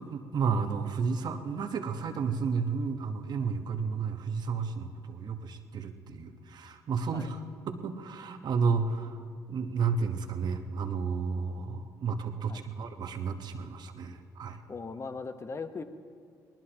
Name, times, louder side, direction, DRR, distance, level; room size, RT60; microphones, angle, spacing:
voice 1, 0.0-7.4 7.7-9.2 9.5-14.6, right 5 dB, 60° right, 7 dB, 1.1 m, -32 dB
voice 2, 14.7-15.8, left 4 dB, 35° left, 9 dB, 1.0 m, -39 dB
20.0 x 19.0 x 2.9 m, 2.2 s
supercardioid pair, 60°, 8 cm